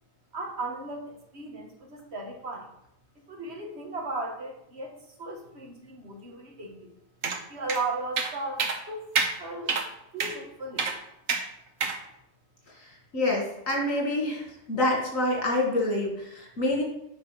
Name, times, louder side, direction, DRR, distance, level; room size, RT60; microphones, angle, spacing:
voice 1, 0.3-2.7 3.3-6.9 7.5-9.1 9.4-9.8 10.1-10.9, right 3 dB, 55° right, 0 dB, 1.9 m, -36 dB
sound 1, 7.2-7.4 7.7-7.8 8.2-8.3 8.6-8.8 9.2-9.3 9.7-9.9 10.2-10.3 10.8-11.0 11.3-11.4 11.8-12.0, right 4 dB, 80° right, 1.4 m, -27 dB
voice 2, 12.7-16.8, left 1 dB, 75° left, -1 dB, 2.8 m, -27 dB
8.8 x 5.2 x 6.0 m, 0.81 s
omnidirectional pair, 1.4 m